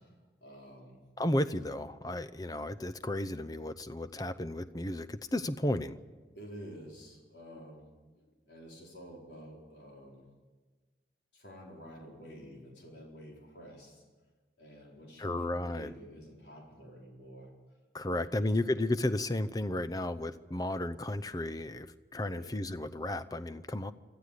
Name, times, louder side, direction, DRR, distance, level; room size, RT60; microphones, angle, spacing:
voice 1, 0.4-1.0 6.3-7.9 8.2-10.3 11.3-14.0 14.6-17.5 18.1-18.6 22.3-22.6, equal, 80° left, -1 dB, 4.4 m, -50 dB
voice 2, 1.2-6.0 15.2-15.9 17.9-23.9, left 1 dB, 20° left, 13 dB, 0.7 m, -33 dB
25.5 x 14.0 x 8.4 m, 1.3 s
head